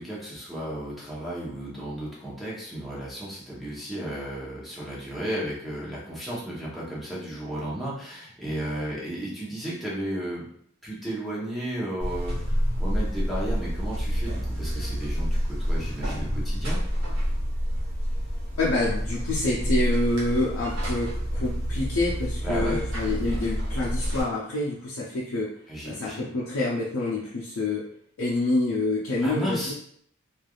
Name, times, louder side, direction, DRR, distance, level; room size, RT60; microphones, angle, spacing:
voice 1, 0.0-10.4 10.8-16.8 22.4-22.8 25.7-26.3 29.2-29.7, right 1 dB, ahead, -8 dB, 0.8 m, -34 dB
Buzz, 12.0-24.2, equal, 60° right, 1.0 m, -28 dB
voice 2, 18.6-25.5 25.8-27.9 28.2-29.7, left 2 dB, 75° left, -5 dB, 0.5 m, -27 dB
3.2 x 2.4 x 2.3 m, 0.65 s
head